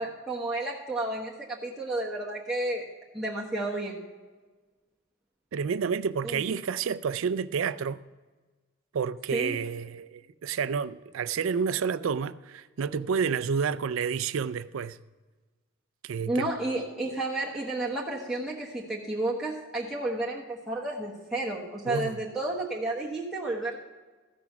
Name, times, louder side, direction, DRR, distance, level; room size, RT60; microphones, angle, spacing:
voice 1, 0.0-2.9 3.1-4.0 6.2-6.4 9.3-9.6 16.3-23.8, right 2 dB, ahead, 1.1 m, -31 dB
voice 2, 5.5-8.0 8.9-15.0 16.0-16.5 21.9-22.2, right 6 dB, 70° right, 0.4 m, -29 dB
14.5 x 6.1 x 5.8 m
head